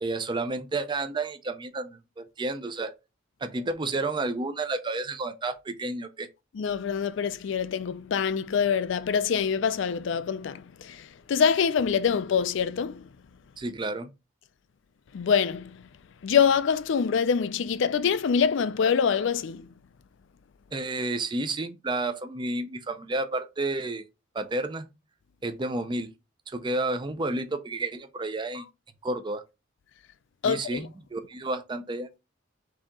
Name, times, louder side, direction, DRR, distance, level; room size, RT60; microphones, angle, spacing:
voice 1, 0.0-2.9 3.4-6.3 13.6-14.1 20.7-24.0 24.3-24.9 25.4-26.1 26.5-28.6 29.0-29.4 30.4-32.1, right 2 dB, 25° right, 0.4 m, -31 dB
voice 2, 6.6-10.6 10.9-11.0 11.3-13.0 15.1-15.7 16.2-19.7 30.4-30.8, left 6 dB, 65° left, 0.4 m, -25 dB
4.8 x 2.8 x 3.5 m
head